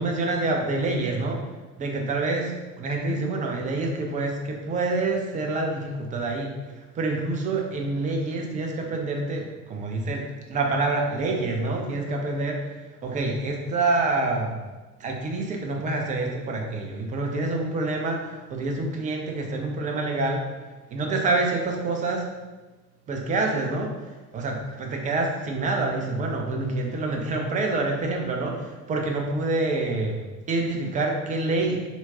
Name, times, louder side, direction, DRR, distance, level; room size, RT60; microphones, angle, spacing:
voice 1, 0.0-1.5 1.8-12.7 13.0-14.6 15.0-20.5 20.9-22.3 23.1-23.9 24.3-30.2 30.5-31.9, right 2 dB, 20° right, 1 dB, 0.3 m, -27 dB
3.4 x 2.8 x 2.8 m, 1.2 s
figure-of-eight pair, 60°, 47 cm